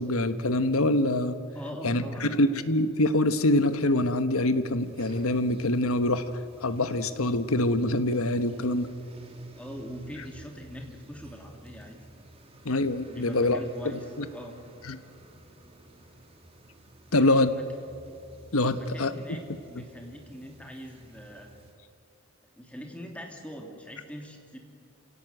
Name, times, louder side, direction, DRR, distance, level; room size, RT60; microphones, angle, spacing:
voice 1, 0.0-1.4 1.8-6.2 6.6-8.9 12.6-13.6 13.8-14.0 14.8-15.0 17.1-17.5 18.5-19.1, left 1 dB, 85° left, 11 dB, 1.3 m, -25 dB
voice 2, 1.5-2.4 9.5-12.0 13.1-14.6 17.1-17.6 18.7-21.5 22.6-24.6, equal, 5° left, 2 dB, 2.6 m, -42 dB
sound 1, 4.8-21.7, right 1 dB, 25° right, 2.4 m, -50 dB
28.0 x 17.0 x 8.0 m, 2.6 s
head